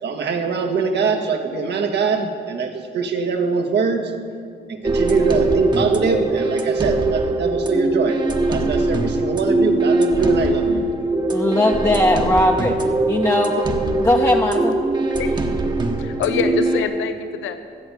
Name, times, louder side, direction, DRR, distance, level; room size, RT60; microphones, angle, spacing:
voice 1, 0.0-4.1 4.7-8.2 8.5-10.9, right 4 dB, 60° right, 4 dB, 1.5 m, -22 dB
sound 1, 4.8-16.8, right 2 dB, 20° right, 1.3 m, -21 dB
voice 2, 11.3-12.8 13.1-13.5 14.0-14.7, left 1 dB, 15° left, 0 dB, 1.0 m, -18 dB
voice 3, 13.6-14.4 15.2-15.6 16.0-17.6, left 8 dB, 85° left, 8 dB, 0.9 m, -26 dB
16.0 x 7.9 x 6.9 m, 2.2 s
cardioid pair, 90°, 20 cm